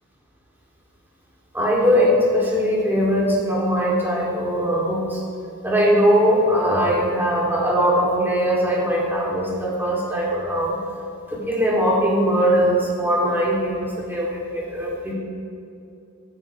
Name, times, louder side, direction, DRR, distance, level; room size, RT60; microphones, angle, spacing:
voice 1, 1.5-5.2 5.6-10.8 11.3-15.1, equal, 10° right, -6 dB, 3.8 m, -20 dB
19.0 x 12.5 x 3.7 m, 2.7 s
head